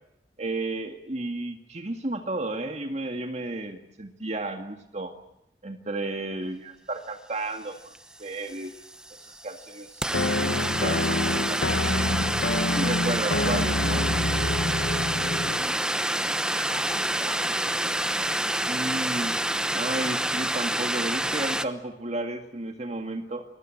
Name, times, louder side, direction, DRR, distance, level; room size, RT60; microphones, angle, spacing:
voice 1, 0.4-5.2 5.6-7.9 8.2-8.7 9.2-11.6 11.9-12.2 12.7-14.1 18.7-19.4 19.7-23.4, right 2 dB, 40° right, 5 dB, 2.1 m, -33 dB
sound 1, 7.9-8.0 8.2-21.7, right 1 dB, 5° right, 0.9 m, -28 dB
sound 2, 10.1-15.7, left 2 dB, 70° left, 1.2 m, -27 dB
voice 2, 15.2-15.9 16.5-17.8, left 2 dB, 25° left, 7 dB, 6.1 m, -43 dB
28.0 x 22.0 x 7.8 m, 0.81 s
head